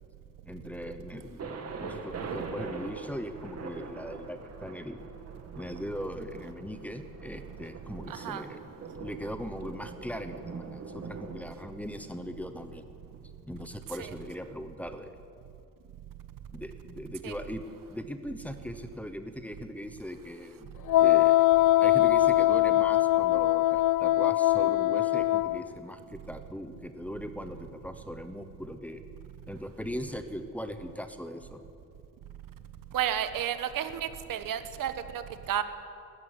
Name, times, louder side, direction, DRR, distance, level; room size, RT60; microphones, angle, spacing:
voice 1, 0.5-5.1 5.6-8.7 9.0-12.9 13.4-15.2 16.5-17.6 17.9-21.4 21.8-29.0 29.5-31.6, equal, 5° left, 8 dB, 1.0 m, -39 dB
Thunder, 1.4-13.2, right 5 dB, 50° right, 2.1 m, -43 dB
voice 2, 8.1-8.4 17.2-17.3 32.9-35.6, right 10 dB, 85° right, 10 dB, 1.3 m, -32 dB
Wind instrument woodwind instrument, 20.9-25.6, left 15 dB, 70° left, 0.5 m, -22 dB
20.0 x 14.5 x 9.8 m, 2.5 s
wide cardioid pair, 175°, 32 cm